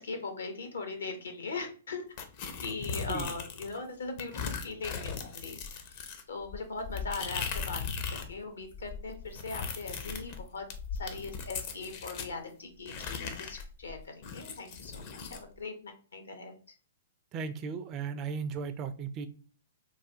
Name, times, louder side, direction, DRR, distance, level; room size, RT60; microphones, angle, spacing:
voice 1, 0.0-2.1 2.6-6.0 6.3-7.8 8.1-10.7 10.9-16.6, left 4 dB, 75° left, 5 dB, 0.8 m, -40 dB
sound 1, 2.2-3.8 4.2-8.3 8.6-12.3 12.9-15.4, left 6 dB, 45° left, 0.5 m, -38 dB
voice 2, 17.3-19.3, right 5 dB, 30° right, 10 dB, 0.3 m, -36 dB
3.2 x 2.2 x 2.6 m, 0.40 s
figure-of-eight pair, 115°, 0 cm